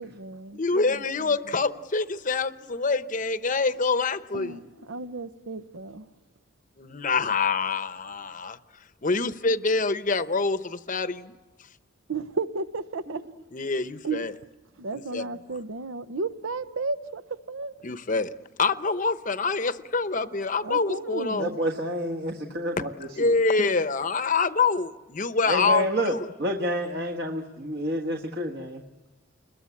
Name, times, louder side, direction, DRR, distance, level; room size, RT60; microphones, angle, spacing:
voice 1, 0.0-1.4 4.3-6.1 12.1-13.2 14.0-14.4 14.8-17.2 17.5-17.8 20.6-21.6, right 3 dB, 75° right, 0.8 m, -33 dB
voice 2, 0.5-4.6 6.8-8.6 9.0-11.3 13.5-14.3 14.9-15.2 17.8-18.3 18.6-21.5 23.2-26.2, left 4 dB, 40° left, 0.8 m, -26 dB
voice 3, 21.4-23.3 23.6-23.7 25.4-28.8, equal, 50° right, 1.5 m, -29 dB
29.0 x 21.5 x 8.5 m
head